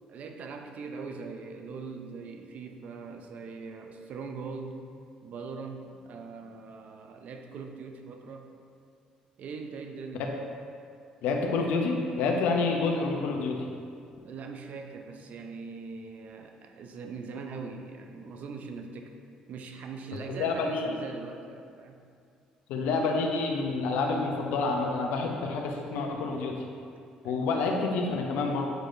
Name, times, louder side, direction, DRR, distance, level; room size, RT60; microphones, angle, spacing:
voice 1, 0.1-4.8 5.2-8.5 9.4-10.3 14.2-19.1 19.5-22.0 27.2-27.8, right 4 dB, 60° right, 4 dB, 0.6 m, -41 dB
voice 2, 11.2-13.6 20.3-21.0 22.7-26.6 27.2-28.6, left 3 dB, 75° left, 1 dB, 0.7 m, -28 dB
7.7 x 4.9 x 2.7 m, 2.3 s
hypercardioid pair, 60°, 3 cm